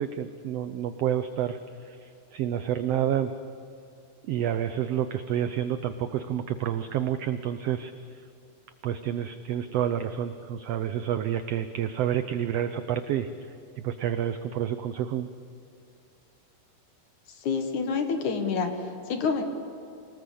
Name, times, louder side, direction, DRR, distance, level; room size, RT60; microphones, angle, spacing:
voice 1, 0.0-1.6 1.9-3.3 4.3-7.9 8.8-13.3 13.8-15.3, right 10 dB, 80° right, 10 dB, 1.4 m, -29 dB
voice 2, 17.4-19.4, left 5 dB, 70° left, 6 dB, 3.0 m, -28 dB
26.5 x 19.5 x 8.5 m, 2.5 s
omnidirectional pair, 3.7 m